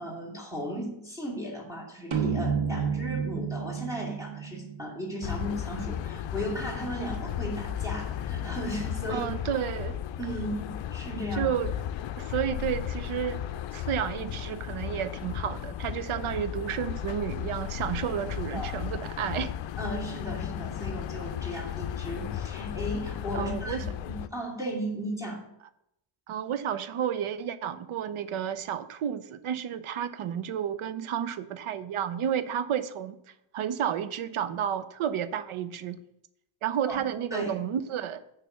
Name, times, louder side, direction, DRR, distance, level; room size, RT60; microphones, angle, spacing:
voice 1, 0.0-9.3 10.2-11.5 18.0-18.1 18.5-18.8 19.8-25.4 36.9-37.0 37.3-37.5, equal, 5° right, 2.4 m, -35 dB
sound 1, 2.1-5.6, right 6 dB, 65° right, 1.3 m, -31 dB
sound 2, 5.2-24.3, left 10 dB, 65° left, 0.6 m, -35 dB
voice 2, 9.1-10.0 11.4-11.7 12.2-19.5 23.3-23.9 26.3-33.2 33.5-36.0 36.6-38.2, right 9 dB, 80° right, 0.7 m, -31 dB
9.5 x 3.4 x 6.6 m
wide cardioid pair, 120°, 49 cm